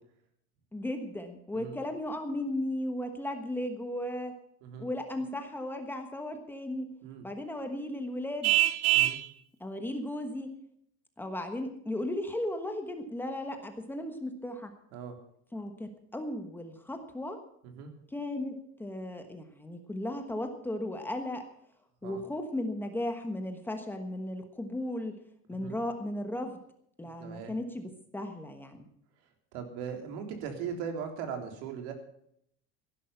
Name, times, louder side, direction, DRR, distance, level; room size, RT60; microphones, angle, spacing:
voice 1, 0.7-4.4 4.8-6.9 7.2-8.5 9.6-10.5 11.2-14.7 15.5-17.4 18.1-21.4 22.0-25.2 25.5-26.6 27.0-28.9, left 1 dB, 5° left, 6 dB, 1.2 m, -36 dB
Vehicle horn car horn honking, 8.4-9.3, right 14 dB, 55° right, 0.7 m, -24 dB
voice 2, 27.2-27.5 29.5-31.9, right 7 dB, 80° right, 5 dB, 3.7 m, -39 dB
15.5 x 11.5 x 5.8 m, 0.69 s
cardioid pair, 175°, 32 cm